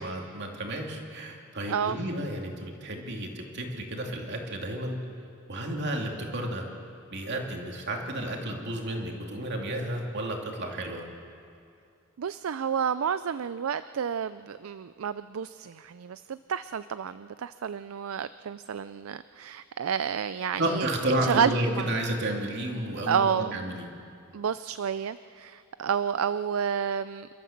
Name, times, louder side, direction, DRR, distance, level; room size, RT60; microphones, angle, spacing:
voice 1, 0.0-5.0 5.5-6.6 7.1-11.0 20.6-23.9, right 1 dB, 55° right, 1 dB, 2.7 m, -32 dB
voice 2, 1.7-2.0 12.2-21.9 23.1-23.6 24.3-27.3, right 7 dB, 70° right, 14 dB, 0.4 m, -30 dB
28.0 x 13.0 x 7.3 m, 2.5 s
head